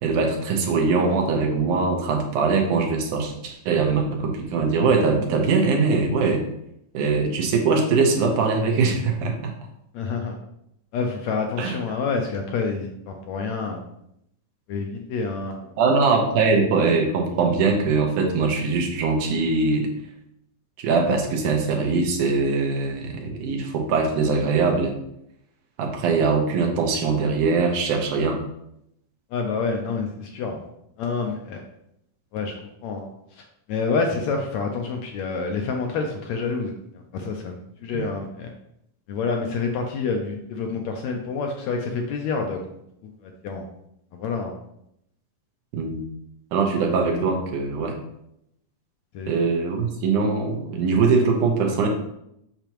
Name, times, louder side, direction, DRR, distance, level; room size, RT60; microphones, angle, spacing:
voice 1, 0.0-6.4 6.9-9.5 11.6-11.8 15.8-19.9 20.8-24.9 25.8-28.4 37.9-38.1 45.7-46.0 46.5-48.0 49.3-51.9, right 4 dB, 75° right, 2 dB, 2.4 m, -22 dB
voice 2, 9.9-10.4 10.9-13.8 14.7-15.7 29.3-30.6 31.0-31.7 32.3-33.1 33.4-33.5 33.7-38.5 39.1-42.8 43.0-43.6 44.1-44.5 49.1-49.3, left 4 dB, 75° left, 2 dB, 1.7 m, -28 dB
6.9 x 5.8 x 3.0 m, 0.77 s
omnidirectional pair, 3.6 m